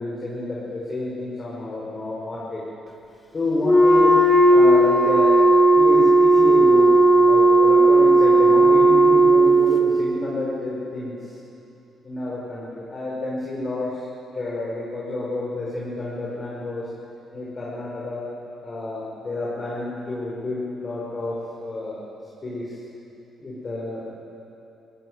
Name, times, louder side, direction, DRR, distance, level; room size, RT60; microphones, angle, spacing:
voice 1, 0.0-2.6 3.3-5.5 5.8-11.4 12.0-14.0 14.3-16.9 17.3-18.3 18.6-22.0 22.4-22.8 23.4-24.1, left 2 dB, 35° left, -6 dB, 5.4 m, -29 dB
Wind instrument woodwind instrument, 3.6-9.7, right 2 dB, 15° left, 2.8 m, -14 dB
17.5 x 16.0 x 9.6 m, 2.8 s
cardioid pair, 90°, 0 cm